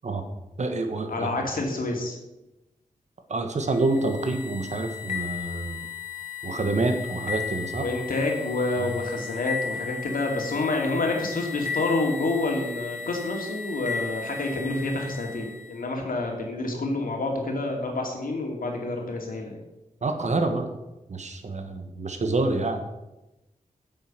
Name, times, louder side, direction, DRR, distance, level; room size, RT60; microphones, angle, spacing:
voice 1, 0.6-1.4 3.3-5.8 6.4-7.8 8.8-8.9 20.0-20.7 21.1-22.8, right 2 dB, 55° right, 6 dB, 1.4 m, -27 dB
voice 2, 1.1-2.2 7.8-19.6, left 2 dB, 80° left, 1 dB, 2.6 m, -28 dB
sound 1, 3.7-15.8, left 6 dB, 65° left, 2.1 m, -35 dB
9.5 x 7.8 x 6.1 m, 0.98 s
wide cardioid pair, 115°, 14 cm